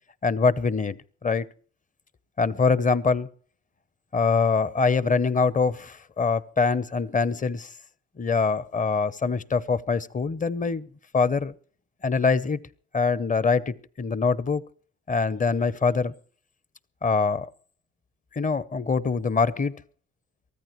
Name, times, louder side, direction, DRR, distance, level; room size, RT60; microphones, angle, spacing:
voice 1, 0.2-1.4 2.4-3.3 4.1-7.7 8.2-10.9 11.1-11.5 12.0-12.6 12.9-14.6 15.1-16.1 17.0-17.5 18.3-19.7, left 4 dB, 25° left, 0.8 m, -24 dB
23.0 x 14.5 x 3.1 m
cardioid pair, 90°, 30 cm